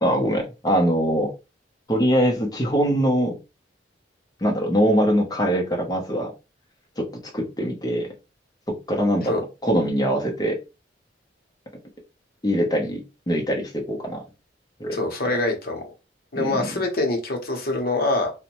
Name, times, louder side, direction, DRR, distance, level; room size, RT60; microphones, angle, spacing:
voice 1, 0.0-1.3 1.9-3.3 4.4-6.3 7.0-7.1 7.3-8.1 8.7-10.6 12.4-14.2 14.8-15.0 16.4-16.7, equal, 20° left, 1 dB, 0.7 m, -22 dB
voice 2, 14.9-15.9 16.3-18.3, left 2 dB, 55° left, 2 dB, 0.8 m, -25 dB
2.6 x 2.1 x 2.9 m, 0.29 s
head